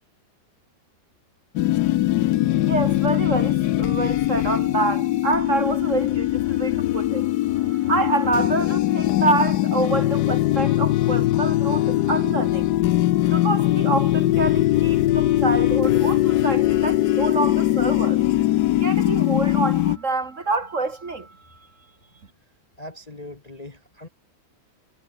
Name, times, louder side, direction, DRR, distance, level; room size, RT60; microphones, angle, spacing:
sound 1, 1.5-20.0, left 15 dB, 70° left, 1.0 m, -21 dB
voice 1, 2.7-7.3 7.6-12.7 13.3-18.2 18.8-21.6, right 3 dB, 40° right, 2.2 m, -27 dB
voice 2, 22.8-24.1, left 1 dB, 20° left, 1.4 m, -40 dB
omnidirectional pair, 2.1 m